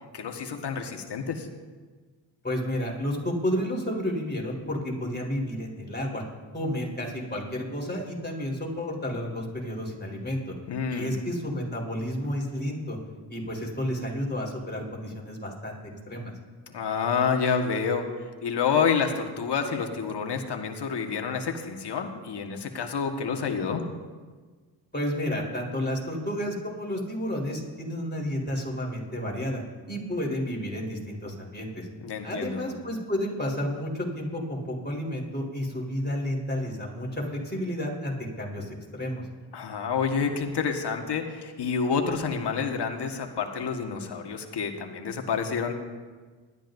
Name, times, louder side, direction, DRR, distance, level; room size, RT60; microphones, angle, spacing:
voice 1, 0.1-1.5 10.7-11.1 16.7-18.0 18.4-23.8 32.0-32.6 39.5-45.8, left 6 dB, 60° left, 4 dB, 1.6 m, -28 dB
voice 2, 2.4-6.2 6.5-10.5 10.9-13.0 13.3-15.8 16.1-16.3 24.9-29.6 29.9-31.9 32.2-39.2, equal, 20° left, -2 dB, 4.1 m, -31 dB
19.5 x 12.5 x 2.7 m, 1.4 s
supercardioid pair, 50°, 46 cm